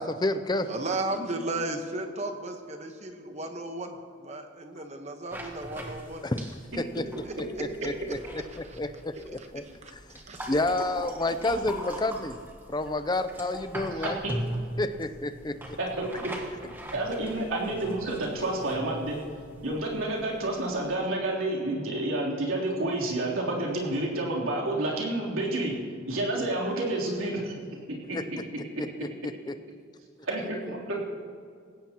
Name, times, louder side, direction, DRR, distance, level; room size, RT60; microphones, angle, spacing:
voice 1, 0.0-0.7 6.2-6.4 6.8-7.2 7.6-8.2 8.6-9.6 10.5-12.4 12.7-14.2 14.8-15.8 28.1-28.2 28.8-28.9 29.2-29.6, left 2 dB, 20° left, 11 dB, 0.5 m, -30 dB
voice 2, 0.7-6.3 7.2-7.3 8.6-8.8 9.1-9.9 10.3-10.6, right 2 dB, 30° right, 5 dB, 1.2 m, -35 dB
sound 1, 5.3-21.0, right 1 dB, 10° right, 1.3 m, -41 dB
voice 3, 14.0-14.3 15.8-16.3 16.9-19.2 19.6-25.7 26.1-27.5 28.1-28.2 30.2-31.0, right 2 dB, 85° right, -3 dB, 3.4 m, -29 dB
19.0 x 16.5 x 3.0 m, 2.3 s
head